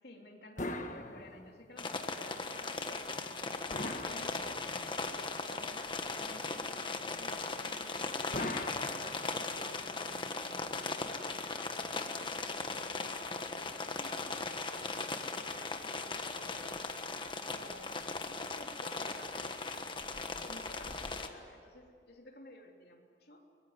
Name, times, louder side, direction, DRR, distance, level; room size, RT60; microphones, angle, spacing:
voice 1, 0.0-3.5 4.0-4.8 5.4-9.2 9.5-14.9 15.6-16.8 17.5-20.1 20.4-23.4, left 1 dB, 60° left, 1 dB, 3.2 m, -54 dB
sound 1, 0.6-1.8 3.7-4.9 8.3-9.6, left 1 dB, 45° left, 1.6 m, -40 dB
sound 2, 1.8-21.3, left 3 dB, 25° left, 1.4 m, -38 dB
24.0 x 20.5 x 9.7 m, 2.2 s
head